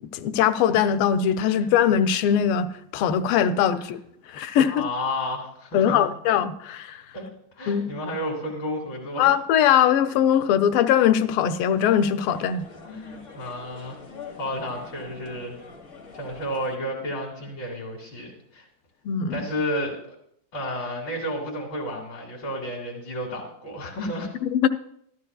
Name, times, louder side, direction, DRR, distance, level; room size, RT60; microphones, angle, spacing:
voice 1, 0.0-4.0 4.3-4.9 5.7-7.0 7.7-7.9 9.2-12.7 19.0-19.4 24.4-24.7, left 9 dB, 90° left, 1.5 m, -21 dB
voice 2, 4.7-6.1 7.1-7.2 7.5-9.3 12.9-14.0 14.4-15.6 16.1-18.7 19.3-20.2 20.5-24.3, left 1 dB, 65° left, 2.5 m, -32 dB
sound 1, 11.8-16.8, left 4 dB, 40° left, 1.5 m, -45 dB
13.5 x 12.5 x 2.3 m
omnidirectional pair, 2.3 m